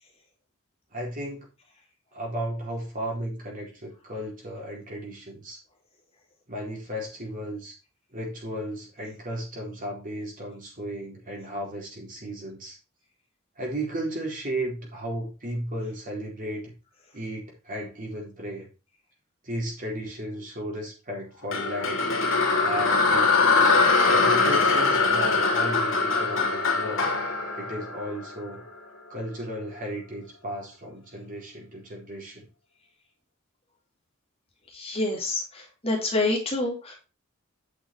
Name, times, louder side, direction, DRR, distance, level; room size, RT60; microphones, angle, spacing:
voice 1, 0.9-1.5 2.1-5.6 6.5-7.8 8.1-12.8 13.6-16.7 17.1-18.7 19.4-22.1 22.6-23.6 24.0-27.1 27.5-28.6 29.1-32.5, equal, 40° right, -2 dB, 4.3 m, -34 dB
sound 1, 21.5-28.7, left 3 dB, 65° left, 2.4 m, -22 dB
voice 2, 34.7-35.4 35.8-37.0, left 2 dB, 30° left, -1 dB, 3.2 m, -26 dB
8.5 x 6.3 x 4.7 m, 0.30 s
head